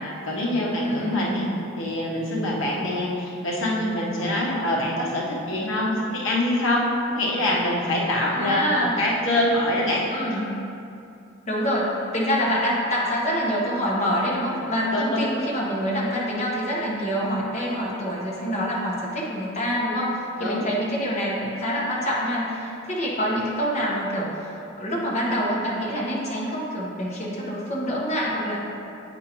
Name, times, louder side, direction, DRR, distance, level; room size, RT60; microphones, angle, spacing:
voice 1, 0.0-1.5 1.8-10.0 14.9-15.2 20.4-20.6, left 1 dB, 65° left, -4 dB, 1.1 m, -25 dB
voice 2, 0.8-1.4 8.3-9.0 10.1-10.5 11.5-24.5 24.8-28.6, equal, 35° left, -5 dB, 1.2 m, -26 dB
8.1 x 5.2 x 3.0 m, 2.7 s
head